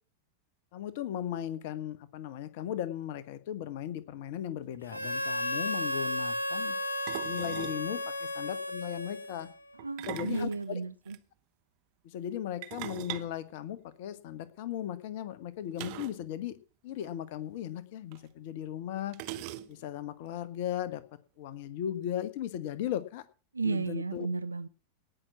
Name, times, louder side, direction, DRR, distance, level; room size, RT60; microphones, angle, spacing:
voice 1, 0.7-6.8 7.2-9.5 10.0-10.8 12.0-16.6 16.8-19.2 19.7-21.0 21.4-23.2 23.6-24.3, left 11 dB, 50° left, 15 dB, 1.2 m, -37 dB
sound 1, 4.7-4.8 5.0-5.3 7.1-7.9 9.8-11.2 12.6-14.3 15.8-16.3 16.5-16.6 16.9-17.1 18.1-18.2 19.1-20.0, right 15 dB, 45° right, 0.9 m, -42 dB
Harmonica, 4.9-9.7, left 1 dB, 85° left, 1.0 m, -34 dB
voice 2, 9.8-11.2 23.5-24.7, right 4 dB, 80° right, 13 dB, 0.5 m, -33 dB
18.0 x 6.2 x 5.8 m, 0.37 s
figure-of-eight pair, 90°, 0 cm